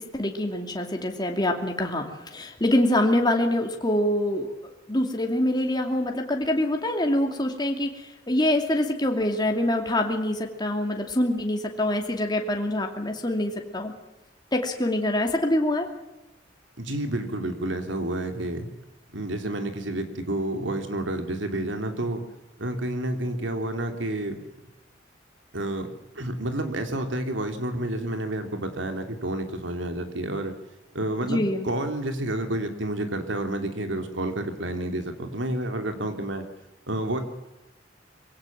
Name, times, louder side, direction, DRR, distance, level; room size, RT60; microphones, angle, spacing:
voice 1, 0.1-2.1 2.3-8.0 8.3-13.9 14.5-15.9 31.2-31.7, left 1 dB, 25° left, 3 dB, 2.6 m, -25 dB
voice 2, 16.8-18.7 19.1-22.2 22.6-24.4 25.5-25.9 26.1-30.5 30.9-36.4 36.9-37.2, right 1 dB, 75° right, 6 dB, 3.2 m, -29 dB
23.0 x 17.0 x 7.5 m, 0.98 s
head